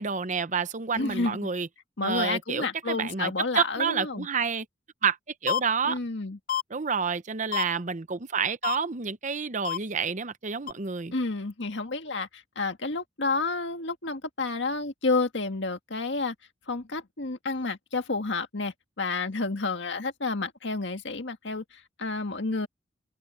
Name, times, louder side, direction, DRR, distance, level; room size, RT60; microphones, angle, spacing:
voice 1, 0.0-1.7 2.0-4.6 5.0-5.2 5.4-6.0 6.7-11.1, right 6 dB, 40° right, 0.9 m, -29 dB
voice 2, 0.9-1.4 2.0-4.3 5.8-6.4 11.1-16.4 16.7-21.6 22.0-22.7, left 3 dB, 70° left, 1.9 m, -30 dB
sound 1, 5.5-5.6 6.5-6.6 7.5-7.6 8.6-8.8 9.6-9.8 10.7-10.8, left 10 dB, 45° left, 0.5 m, -27 dB
open air
head